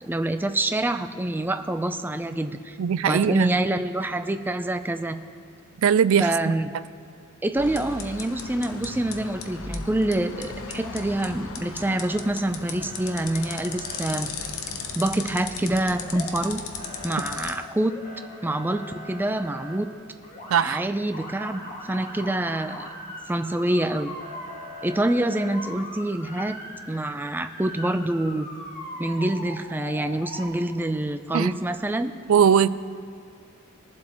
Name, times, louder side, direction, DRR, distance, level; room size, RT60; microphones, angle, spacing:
voice 1, 0.0-2.8 3.1-5.2 6.2-6.7 7.4-14.3 14.9-16.6 17.0-18.0 18.4-19.9 20.6-22.9 23.3-24.1 24.8-26.6 26.9-28.5 29.0-32.1, right 1 dB, 10° right, 8 dB, 0.4 m, -26 dB
voice 2, 2.8-3.5 5.8-6.5 20.5-20.8 31.3-31.5 32.3-32.7, right 7 dB, 80° right, 16 dB, 0.4 m, -20 dB
sound 1, 7.5-17.5, left 5 dB, 85° left, 0.8 m, -36 dB
Motor vehicle (road) / Siren, 10.5-11.5 11.8-12.3 12.7-14.0 15.9-16.5 16.8-19.8 20.2-20.7 21.1-30.5, left 1 dB, 40° left, 1.9 m, -40 dB
22.0 x 7.5 x 3.0 m, 2.4 s
head